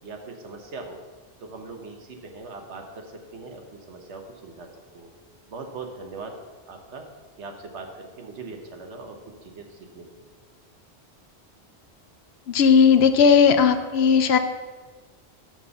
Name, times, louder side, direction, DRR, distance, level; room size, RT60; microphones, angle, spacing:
voice 1, 0.0-1.0 1.4-4.7 4.9-5.1 5.5-6.3 6.7-7.0 7.4-10.0, right 3 dB, 90° right, 3 dB, 1.3 m, -40 dB
voice 2, 12.5-14.4, left 6 dB, 75° left, 9 dB, 0.8 m, -16 dB
6.0 x 5.4 x 6.9 m, 1.4 s
omnidirectional pair, 1.1 m